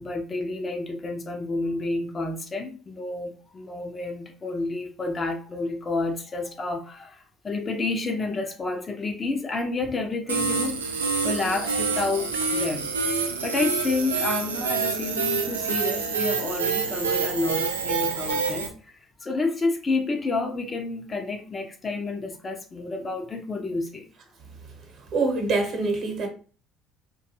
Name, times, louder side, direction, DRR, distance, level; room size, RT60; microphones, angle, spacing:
voice 1, 0.0-10.9 11.2-12.9 13.4-24.1, left 3 dB, 30° left, 0.5 m, -30 dB
sound 1, 10.3-18.7, right 5 dB, 85° right, 0.3 m, -27 dB
voice 2, 25.1-26.3, right 3 dB, 55° right, 0.9 m, -24 dB
2.6 x 2.3 x 2.6 m
figure-of-eight pair, 60°, 0 cm